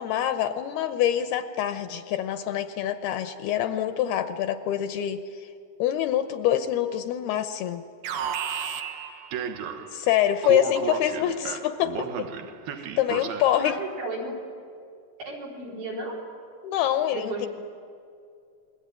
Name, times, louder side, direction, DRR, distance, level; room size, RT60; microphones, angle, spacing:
voice 1, 0.0-5.2 5.8-7.8 9.9-12.3 12.8-13.8 16.6-17.5, left 11 dB, 75° left, 9 dB, 2.5 m, -25 dB
Alarm, 8.0-10.0 10.4-13.7, right 8 dB, 65° right, 2.6 m, -33 dB
voice 2, 13.6-14.3 15.3-16.1 17.1-17.5, right 2 dB, 85° right, -3 dB, 6.7 m, -34 dB
28.5 x 21.5 x 9.1 m, 2.4 s
omnidirectional pair, 5.1 m